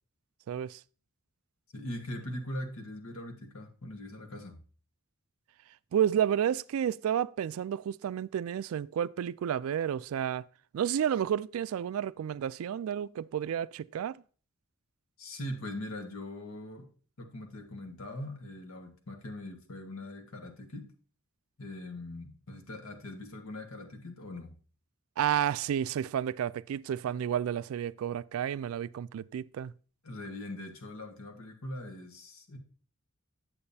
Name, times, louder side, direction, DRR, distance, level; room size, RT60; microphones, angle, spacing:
voice 1, 0.5-0.8 5.9-10.4 10.7-14.2 25.2-29.7, right 9 dB, 80° right, 0.3 m, -31 dB
voice 2, 1.7-4.5 15.2-16.9 17.2-20.9 21.6-24.6 30.0-32.6, left 1 dB, 85° left, 1.5 m, -41 dB
8.6 x 8.0 x 2.7 m
head